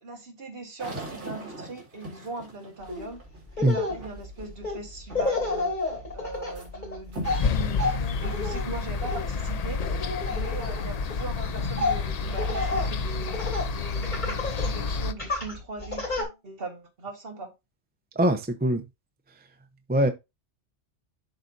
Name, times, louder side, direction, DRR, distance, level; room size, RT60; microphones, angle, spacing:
voice 1, 0.0-3.2 3.6-9.8 10.3-17.5, right 3 dB, 50° right, 1.8 m, -40 dB
sound 1, 0.8-4.6 5.1-5.6 6.0-6.7 7.1-7.5 8.1-8.2 8.9-9.0 11.5-11.6 12.1-12.7, right 1 dB, 70° right, 2.4 m, -41 dB
Laughter, 2.9-3.1 3.5-13.7 14.0-14.7 15.2-16.2, left 2 dB, 40° left, 3.2 m, -31 dB
sound 2, 7.2-15.1, left 4 dB, 55° left, 0.4 m, -29 dB
voice 2, 18.2-18.8 19.9-20.1, right 1 dB, 10° right, 0.5 m, -22 dB
11.5 x 4.1 x 2.6 m
omnidirectional pair, 1.2 m